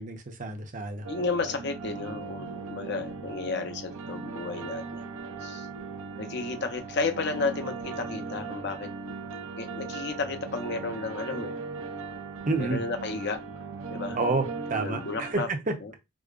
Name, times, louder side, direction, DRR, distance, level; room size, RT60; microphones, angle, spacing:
voice 1, 0.0-1.1 12.5-12.8 14.1-15.7, right 3 dB, 35° right, 0.6 m, -29 dB
sound 1, 1.0-15.3, right 4 dB, 75° right, 0.6 m, -38 dB
voice 2, 1.1-5.1 5.4-5.7 6.2-8.9 9.6-11.6 12.6-13.4 13.9-14.2 14.8-15.5 15.8-15.9, left 3 dB, 50° left, 0.6 m, -32 dB
4.9 x 2.0 x 2.4 m
head